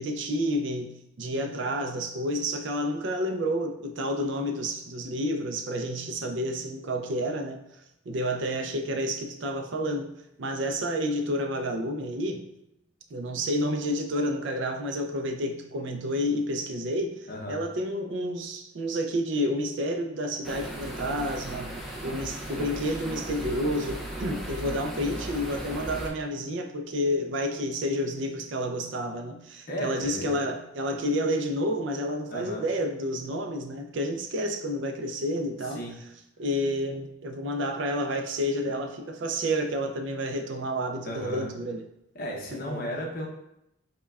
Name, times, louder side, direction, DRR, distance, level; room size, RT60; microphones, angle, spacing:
voice 1, 0.0-7.6 8.1-10.1 10.4-12.5 13.1-21.8 22.0-35.8 36.4-41.8 42.5-42.8, equal, 65° right, 4 dB, 0.4 m, -30 dB
voice 2, 17.3-17.6 29.7-30.3 32.3-32.6 35.6-36.1 41.0-41.5 42.1-43.3, equal, 45° left, -1 dB, 0.7 m, -34 dB
sound 1, 20.4-26.1, right 1 dB, ahead, 0.4 m, -36 dB
5.2 x 2.2 x 2.3 m, 0.82 s
head